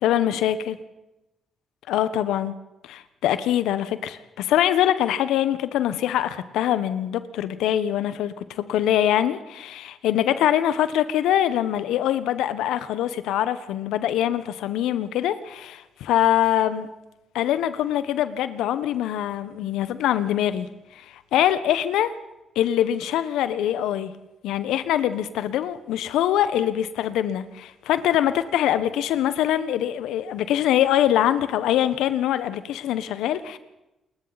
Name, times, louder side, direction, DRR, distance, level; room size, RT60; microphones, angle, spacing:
voice 1, 0.0-0.8 1.9-2.5 2.8-16.9 17.3-20.7 21.0-21.1 21.3-22.1 22.5-24.1 24.4-33.6, left 11 dB, 75° left, 13 dB, 1.2 m, -23 dB
29.0 x 21.5 x 4.2 m, 0.97 s
hypercardioid pair, 45°, 0 cm